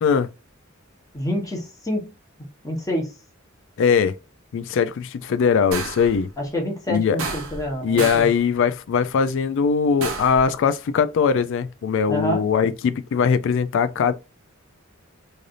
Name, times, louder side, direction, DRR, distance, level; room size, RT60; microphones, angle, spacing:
voice 1, 1.1-2.1 2.6-3.1 6.4-8.3 12.1-12.4, equal, 15° left, 1.0 m, -27 dB
voice 2, 3.8-4.1 4.5-6.3 6.9-7.2 7.8-14.1, left 6 dB, 65° left, 0.3 m, -20 dB
sound 1, 5.7-6.2 7.2-7.7 8.0-8.4 10.0-10.4, right 4 dB, 75° right, 0.8 m, -30 dB
3.2 x 2.6 x 2.4 m
head